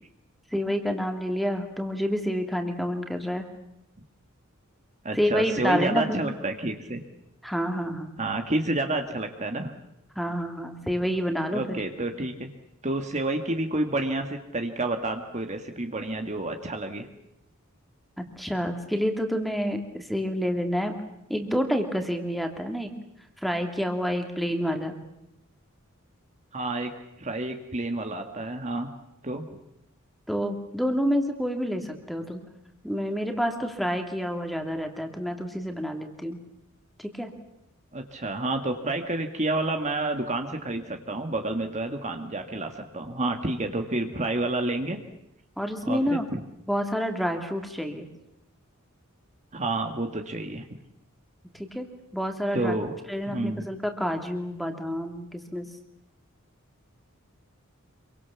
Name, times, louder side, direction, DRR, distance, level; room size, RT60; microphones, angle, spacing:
voice 1, 0.5-3.4 5.1-6.2 7.4-8.2 10.2-11.8 18.2-21.0 21.3-22.9 23.4-24.9 30.3-32.4 32.8-36.4 37.0-37.3 45.6-46.3 46.7-48.1 51.6-51.9 52.1-52.8 53.1-55.6, equal, ahead, 5 dB, 2.6 m, -28 dB
voice 2, 5.0-7.0 8.2-9.7 11.5-12.5 12.8-17.1 26.5-26.9 27.2-28.9 29.2-29.4 37.9-45.0 45.9-46.4 49.5-50.7 52.5-52.9 53.3-53.6, right 2 dB, 35° right, 5 dB, 1.7 m, -29 dB
27.0 x 24.0 x 7.2 m, 0.83 s
head